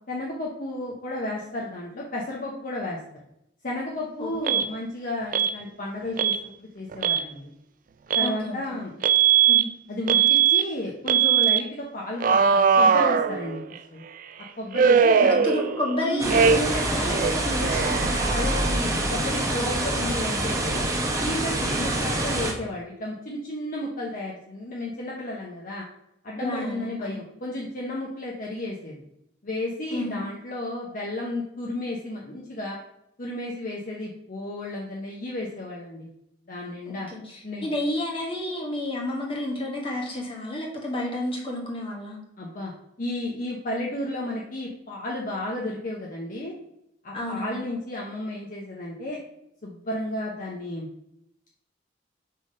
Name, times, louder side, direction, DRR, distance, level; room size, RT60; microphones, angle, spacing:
voice 1, 0.1-3.0 3.6-7.5 8.1-8.9 9.9-13.6 13.9-14.0 14.6-15.5 16.0-16.4 18.3-20.8 21.2-25.8 26.2-29.0 29.4-32.8 33.2-36.1 36.5-37.1 37.4-37.8 42.4-42.7 43.0-46.5 47.0-49.2 49.6-50.9, left 1 dB, 50° left, -3 dB, 0.9 m, -32 dB
voice 2, 4.2-4.6 8.2-8.8 9.4-9.6 15.2-18.4 21.8-21.9 26.4-27.2 29.9-30.3 37.1-42.2 47.1-47.6, left 1 dB, 30° left, -2 dB, 1.6 m, -31 dB
Alarm, 4.5-4.7 5.3-5.5 6.2-6.4 6.9-7.2 8.1-8.3 9.0-9.6 10.1-10.6 11.1-11.6 12.2-13.8 14.7-15.9 16.3-16.8 17.1-18.8, right 7 dB, 45° right, 0.3 m, -20 dB
sound 1, 16.2-22.5, right 1 dB, 15° right, 1.1 m, -26 dB
5.5 x 3.5 x 5.3 m, 0.79 s
head